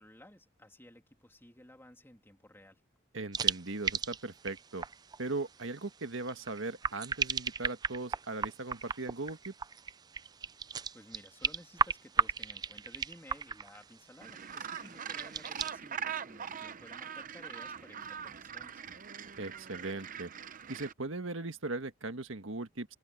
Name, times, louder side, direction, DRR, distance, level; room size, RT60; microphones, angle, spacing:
voice 1, 0.0-2.8 10.9-18.8, left 1 dB, 10° left, 3.0 m, -55 dB
voice 2, 3.1-4.8 5.2-9.5 19.4-20.3 20.7-22.9, right 3 dB, 75° right, 1.6 m, -39 dB
sound 1, 3.3-15.7, right 5 dB, 20° right, 0.3 m, -35 dB
Gull seagull, 14.2-20.9, right 8 dB, 45° right, 0.7 m, -42 dB
head